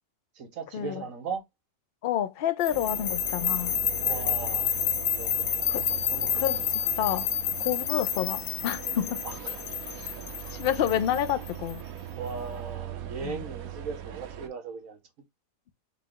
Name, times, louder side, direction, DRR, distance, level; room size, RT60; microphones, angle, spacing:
voice 1, 0.3-1.4 4.0-4.8 5.2-6.7 9.2-9.7 10.9-11.0 12.1-15.0, right 5 dB, 70° right, 1.3 m, -38 dB
voice 2, 2.0-3.7 5.7-5.9 6.3-6.6 7.0-7.3 7.6-9.2 10.5-11.8 13.2-13.4, left 11 dB, 65° left, 0.6 m, -28 dB
sound 1, 2.6-11.7, left 9 dB, 80° left, 1.1 m, -29 dB
sound 2, 2.7-14.5, right 10 dB, 90° right, 1.2 m, -40 dB
5.7 x 2.3 x 3.7 m
omnidirectional pair, 1.5 m